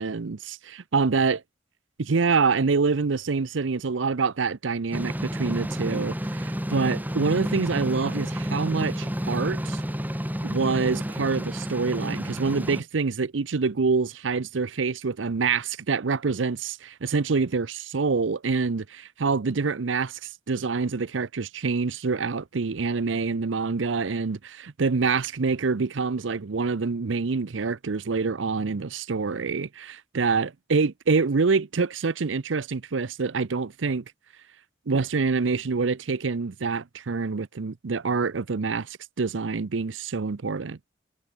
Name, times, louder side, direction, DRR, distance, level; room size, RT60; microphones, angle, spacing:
voice 1, 0.0-1.4 2.0-9.8 10.4-34.0 34.9-40.8, right 4 dB, 85° right, 0.7 m, -26 dB
sound 1, 4.9-12.8, equal, 10° right, 2.9 m, -30 dB
head